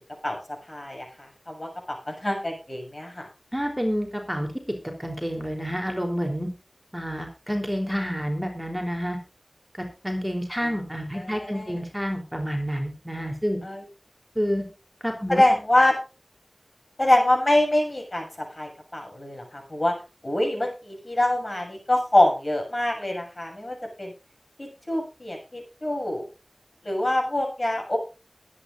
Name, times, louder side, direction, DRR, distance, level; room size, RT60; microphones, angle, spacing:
voice 1, 0.7-3.3 10.6-10.7 11.1-11.8 13.6-13.8 15.3-16.0 17.0-19.9 20.2-24.1 24.6-26.2 26.8-28.0, left 1 dB, 45° left, 2 dB, 7.2 m, -25 dB
voice 2, 3.5-4.5 5.0-6.5 6.9-9.2 9.7-13.6 14.4-14.6 15.0-15.4, equal, 5° right, 2 dB, 3.5 m, -29 dB
22.0 x 9.9 x 2.6 m, 0.30 s
wide cardioid pair, 50°, 0 cm